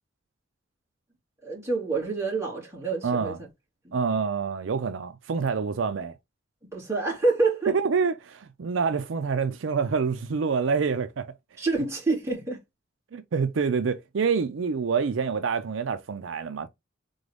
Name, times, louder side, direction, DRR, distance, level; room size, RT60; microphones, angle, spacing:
voice 1, 1.4-3.3 3.8-4.0 6.7-7.7 11.6-12.6, right 3 dB, 15° right, 2.2 m, -27 dB
voice 2, 3.0-3.4 3.9-6.1 7.7-11.3 13.1-16.7, right 5 dB, 75° right, 0.5 m, -27 dB
3.8 x 3.8 x 3.3 m
head